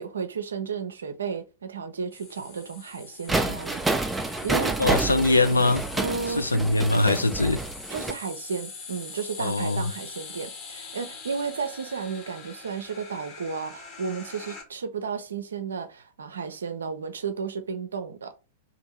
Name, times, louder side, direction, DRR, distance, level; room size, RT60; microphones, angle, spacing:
voice 1, 0.0-3.8 4.2-4.8 5.9-6.5 7.9-18.3, right 5 dB, 70° right, 0.5 m, -33 dB
sound 1, 2.1-14.6, left 5 dB, 35° left, 1.0 m, -43 dB
sound 2, 3.3-8.1, right 2 dB, 5° right, 0.4 m, -28 dB
voice 2, 4.8-5.8 6.3-7.6 9.4-9.8, left 2 dB, 85° left, 0.4 m, -22 dB
2.7 x 2.6 x 4.2 m
figure-of-eight pair, 95°, 0 cm